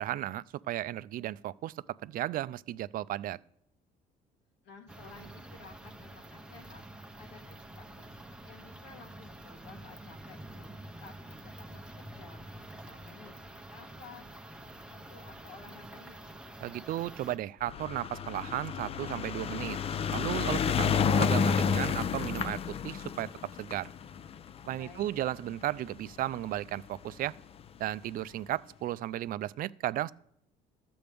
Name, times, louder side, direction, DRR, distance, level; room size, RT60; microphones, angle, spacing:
voice 1, 0.0-1.7 2.0-3.4 16.6-19.8 20.1-23.3 23.6-23.9 24.7-27.3 27.8-30.1, right 14 dB, 55° right, 19 dB, 0.4 m, -35 dB
voice 2, 4.6-6.8 7.2-8.1 8.4-12.4 12.7-16.3 24.7-25.2, left 4 dB, 85° left, 2 dB, 1.9 m, -54 dB
sound 1, 4.9-17.4, right 1 dB, 5° right, 0.8 m, -48 dB
sound 2, 17.6-26.1 27.0-27.1 27.3-27.4 27.6-27.7, left 6 dB, 35° left, 0.4 m, -30 dB
13.0 x 7.7 x 3.5 m, 0.71 s
cardioid pair, 110°, 17 cm